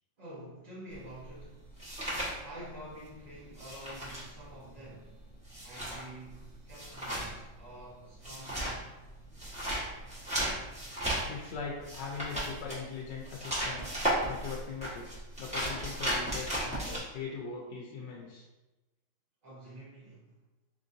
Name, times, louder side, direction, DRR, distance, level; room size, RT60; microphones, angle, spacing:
voice 1, 0.2-1.8 2.4-5.2 5.6-8.8 19.4-20.4, right 1 dB, 40° right, -10 dB, 0.7 m, -48 dB
sound 1, 0.9-3.1 3.3-17.0, right 1 dB, 5° right, 0.8 m, -35 dB
voice 2, 11.3-13.8 14.3-18.4, left 5 dB, 75° left, -2 dB, 1.1 m, -41 dB
3.9 x 3.7 x 2.5 m, 1.1 s
omnidirectional pair, 2.1 m